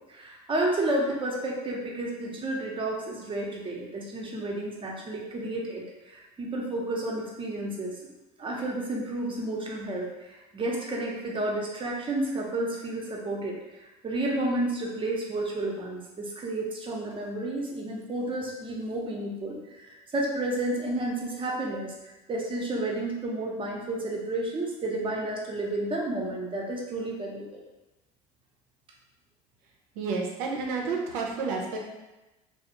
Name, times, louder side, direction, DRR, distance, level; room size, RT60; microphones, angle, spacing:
voice 1, 0.1-5.8 6.1-7.9 8.4-13.6 14.0-21.9 22.3-27.6, right 1 dB, 25° right, -2 dB, 0.7 m, -31 dB
voice 2, 29.9-31.9, right 4 dB, 75° right, 0 dB, 0.6 m, -30 dB
2.4 x 2.0 x 2.9 m, 1.0 s
hypercardioid pair, 75°, 19 cm